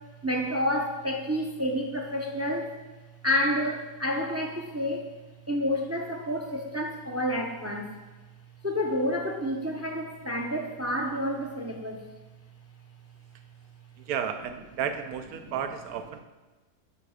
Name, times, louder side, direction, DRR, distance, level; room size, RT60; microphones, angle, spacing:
voice 1, 0.2-2.7 3.2-5.1 5.5-7.9 8.6-12.0 15.4-15.5, equal, 20° right, 2 dB, 0.4 m, -29 dB
voice 2, 14.1-16.2, right 8 dB, 80° right, 9 dB, 1.2 m, -32 dB
7.6 x 5.7 x 6.4 m, 1.2 s
omnidirectional pair, 1.6 m